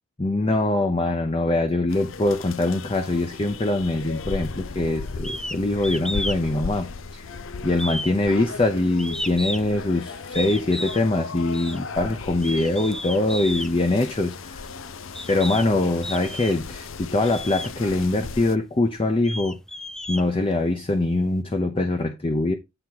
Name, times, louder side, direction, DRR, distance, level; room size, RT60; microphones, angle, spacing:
voice 1, 0.2-7.3 7.6-14.6 15.3-19.6 20.1-22.5, left 2 dB, 25° left, 0.7 m, -23 dB
sound 1, 1.9-18.6, left 4 dB, 75° left, 0.6 m, -37 dB
sound 2, 5.2-5.6 5.8-6.4 6.7-7.4 7.8-9.8 10.3-11.0 11.5-11.8 12.3-13.7 14.5-14.6 15.1-15.7 16.0-16.7 17.2-17.7 18.4-18.5 19.0-20.8, left 1 dB, 5° left, 0.4 m, -33 dB
9.9 x 3.6 x 4.7 m
head